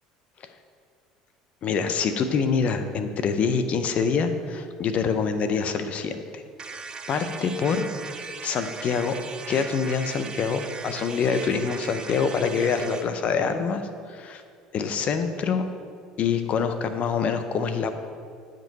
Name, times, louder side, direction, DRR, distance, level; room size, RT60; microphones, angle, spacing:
voice 1, 1.6-6.8 7.1-7.8 8.4-9.1 9.5-13.8 14.1-14.4 14.7-15.7 16.2-17.9, left 5 dB, 50° left, 9 dB, 0.7 m, -25 dB
sound 1, 6.6-13.1, right 5 dB, 30° right, 0.6 m, -38 dB
8.7 x 5.3 x 4.0 m, 2.2 s
hypercardioid pair, 75°, 3 cm